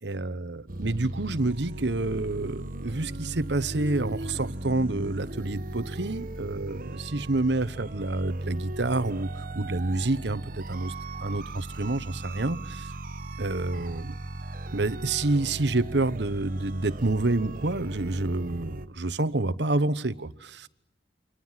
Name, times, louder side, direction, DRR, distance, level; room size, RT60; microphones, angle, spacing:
voice 1, 0.0-10.9 11.2-12.9 13.4-14.2 14.7-20.7, right 2 dB, 75° right, 1.1 m, -28 dB
sound 1, 0.7-18.9, right 1 dB, 50° right, 1.3 m, -37 dB
29.0 x 26.0 x 7.5 m
head